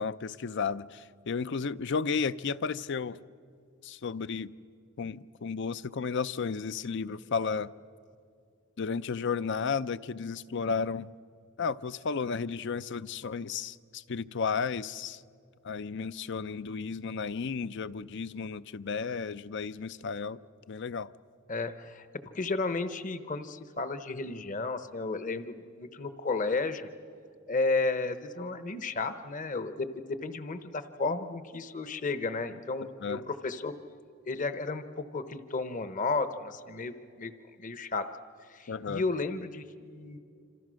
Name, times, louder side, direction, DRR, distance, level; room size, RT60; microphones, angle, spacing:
voice 1, 0.0-3.2 3.8-4.5 5.0-7.7 8.8-11.1 11.6-15.2 15.6-20.4 20.7-21.1 33.0-33.2 38.7-39.0, left 5 dB, 60° left, 0.5 m, -33 dB
voice 2, 21.5-22.1 22.3-26.9 27.5-33.7 34.3-37.3 37.6-38.1 38.5-40.2, left 3 dB, 40° left, 0.9 m, -33 dB
27.5 x 26.5 x 6.3 m
head